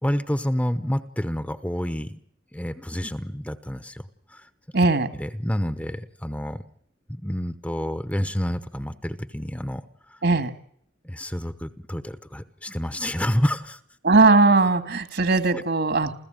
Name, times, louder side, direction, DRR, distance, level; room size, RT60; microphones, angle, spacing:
voice 1, 0.0-2.2 2.5-4.0 4.3-4.5 5.2-6.6 7.1-9.8 10.1-10.2 11.0-13.8 15.5-15.6, equal, 5° left, 12 dB, 0.9 m, -28 dB
voice 2, 4.7-5.1 10.2-10.5 14.0-16.2, right 3 dB, 60° right, 11 dB, 2.1 m, -19 dB
28.5 x 15.0 x 9.0 m, 0.67 s
head